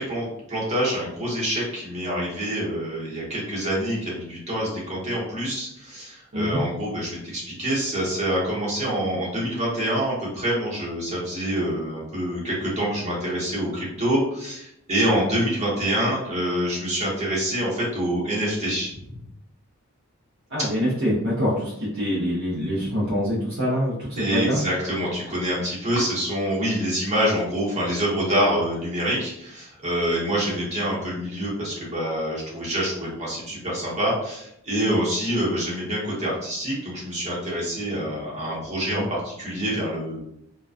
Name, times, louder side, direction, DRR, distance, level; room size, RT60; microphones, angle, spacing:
voice 1, 0.0-19.2 24.2-40.2, equal, 30° right, -6 dB, 0.9 m, -26 dB
voice 2, 20.5-24.6 38.8-39.0, equal, 60° right, -8 dB, 0.7 m, -25 dB
2.3 x 2.2 x 2.4 m, 0.78 s
head